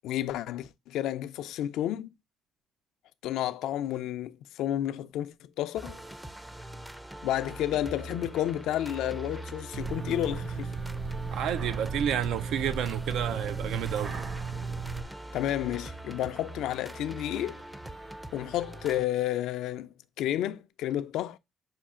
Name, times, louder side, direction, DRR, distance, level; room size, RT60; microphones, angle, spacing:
voice 1, 0.0-2.1 3.2-6.0 7.2-10.7 15.3-17.6 18.3-21.4, left 12 dB, 90° left, 0.3 m, -31 dB
sound 1, 5.8-19.1, right 1 dB, 10° right, 0.4 m, -43 dB
sound 2, 9.7-15.0, right 4 dB, 55° right, 1.1 m, -35 dB
voice 2, 11.3-14.2, right 10 dB, 85° right, 0.3 m, -30 dB
5.9 x 2.4 x 3.6 m
cardioid pair, 90°, 0 cm